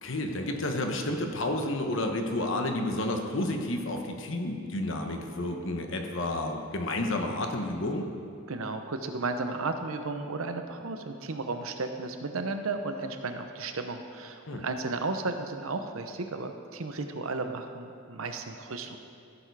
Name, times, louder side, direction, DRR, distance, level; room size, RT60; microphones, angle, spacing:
voice 1, 0.0-8.1 14.5-14.7, left 1 dB, 60° left, 3 dB, 1.1 m, -31 dB
voice 2, 8.5-19.0, right 3 dB, 75° right, 6 dB, 0.8 m, -34 dB
14.5 x 7.0 x 4.8 m, 2.4 s
head